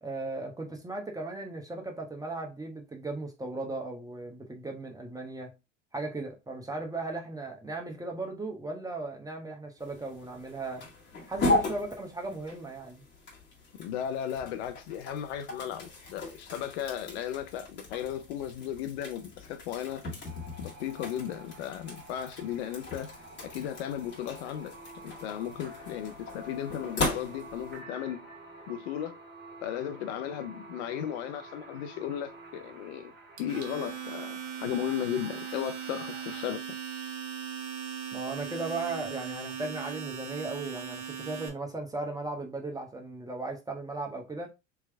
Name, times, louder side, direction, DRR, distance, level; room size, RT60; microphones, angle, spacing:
voice 1, 0.0-5.5 5.9-10.8 11.3-13.0 38.1-44.5, right 2 dB, 10° right, 1.0 m, -37 dB
sound 1, 9.8-27.8, left 2 dB, 30° left, 1.8 m, -37 dB
voice 2, 13.8-20.0 20.6-23.1 23.4-24.8 25.0-28.2 28.7-29.2 29.6-33.1 33.4-36.8, left 10 dB, 60° left, 0.6 m, -35 dB
sound 2, 20.2-36.5, right 1 dB, 25° right, 1.3 m, -49 dB
Domestic sounds home sounds, 33.4-41.5, right 7 dB, 65° right, 1.3 m, -39 dB
3.5 x 3.1 x 3.3 m
hypercardioid pair, 90°, 38 cm